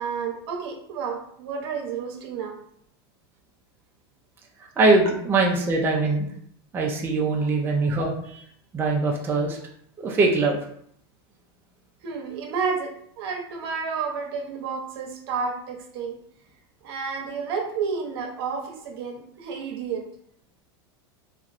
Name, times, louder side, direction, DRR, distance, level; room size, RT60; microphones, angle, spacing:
voice 1, 0.0-2.6 7.8-7.9 12.0-16.2 16.8-20.0, right 5 dB, 70° right, 2 dB, 0.8 m, -31 dB
voice 2, 4.8-6.3 6.7-8.4 8.7-9.6 10.0-10.6, right 3 dB, 15° right, -2 dB, 0.4 m, -22 dB
3.0 x 2.5 x 2.5 m, 0.67 s
supercardioid pair, 135°, 13 cm